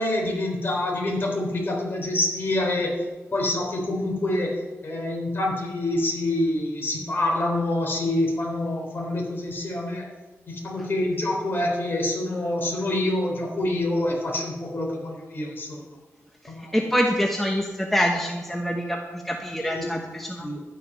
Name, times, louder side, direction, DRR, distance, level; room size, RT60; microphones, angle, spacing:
voice 1, 0.0-2.9 3.3-4.5 4.8-10.1 10.5-15.8 16.5-16.7 19.6-19.9 20.4-20.6, left 1 dB, 45° left, -1 dB, 3.8 m, -26 dB
voice 2, 16.7-20.5, equal, 5° left, 0 dB, 1.1 m, -25 dB
12.0 x 9.9 x 5.6 m, 1.3 s
wide cardioid pair, 155°, 5 cm